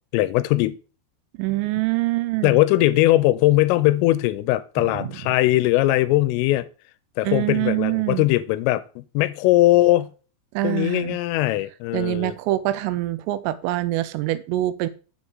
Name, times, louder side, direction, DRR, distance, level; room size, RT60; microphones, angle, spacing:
voice 1, 0.1-0.8 2.4-6.7 7.2-10.1 10.6-12.3, left 16 dB, 85° left, 3.2 m, -20 dB
voice 2, 1.4-2.6 4.8-5.2 7.2-8.3 10.5-11.2 11.9-14.9, right 17 dB, 85° right, 3.2 m, -25 dB
8.0 x 4.2 x 7.1 m
omnidirectional pair, 5.8 m